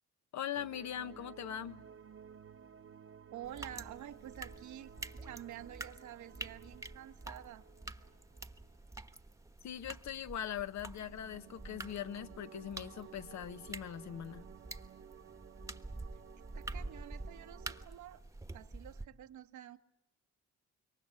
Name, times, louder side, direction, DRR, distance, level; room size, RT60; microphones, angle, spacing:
voice 1, 0.3-1.8 9.6-14.4, left 9 dB, 65° left, 11 dB, 1.2 m, -41 dB
sound 1, 0.5-9.5 10.7-17.9, right 8 dB, 45° right, 1.1 m, -56 dB
voice 2, 3.3-4.9 5.2-7.6 16.5-18.2 18.5-19.8, right 11 dB, 75° right, 10 dB, 1.2 m, -49 dB
sound 2, 3.4-19.1, right 2 dB, 10° right, 1.2 m, -48 dB
26.5 x 23.0 x 7.7 m, 0.88 s
cardioid pair, 90°, 30 cm